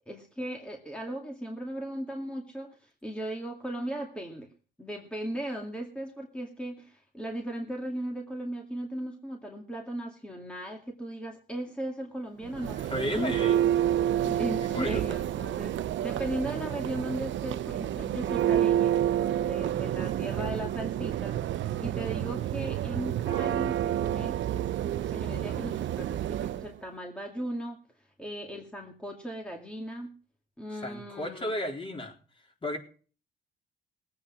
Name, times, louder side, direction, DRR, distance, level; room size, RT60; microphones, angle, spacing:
voice 1, 0.1-4.5 4.8-13.5 14.3-30.1 30.6-31.6, right 1 dB, 5° left, 2 dB, 2.3 m, -37 dB
Church bell, 12.4-26.7, right 11 dB, 70° right, 0.8 m, -29 dB
voice 2, 12.8-13.6 14.2-15.2 30.7-32.1 32.6-32.8, left 1 dB, 25° left, 2 dB, 4.0 m, -34 dB
19.5 x 8.7 x 6.3 m, 0.41 s
cardioid pair, 90°, 20 cm